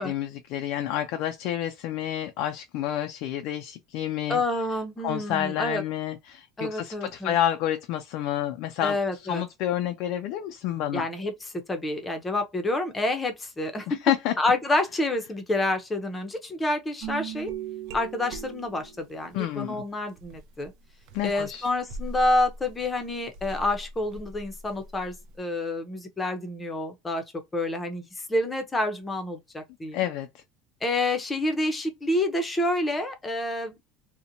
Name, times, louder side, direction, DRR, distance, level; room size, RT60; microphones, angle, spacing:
voice 1, 0.0-4.4 5.0-11.1 13.9-14.3 19.3-19.8 21.1-21.7 29.9-30.4, left 11 dB, 60° left, 0.3 m, -29 dB
voice 2, 4.3-5.8 6.6-7.3 8.8-9.4 10.9-11.3 11.7-14.0 14.4-17.5 17.9-20.7 21.2-27.2 27.5-28.0 28.3-30.0 30.8-33.8, left 2 dB, 15° left, 0.6 m, -28 dB
sound 1, 17.0-19.4 20.1-25.4, right 5 dB, 55° right, 0.5 m, -40 dB
2.8 x 2.1 x 2.6 m
cardioid pair, 150°, 0 cm